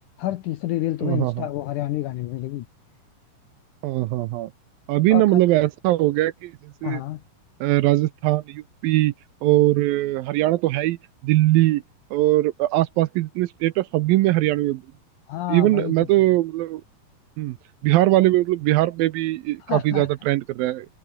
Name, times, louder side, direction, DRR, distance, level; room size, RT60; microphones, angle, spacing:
voice 1, 0.2-2.7 5.1-5.4 6.8-7.2 15.3-15.9 19.6-20.1, left 14 dB, 85° left, 1.8 m, -28 dB
voice 2, 1.0-1.4 3.8-4.5 4.9-7.0 7.6-9.1 9.4-11.0 11.2-11.8 12.1-14.8 15.5-16.8 17.4-17.6 17.8-20.9, right 17 dB, 75° right, 2.2 m, -21 dB
omnidirectional pair, 4.7 m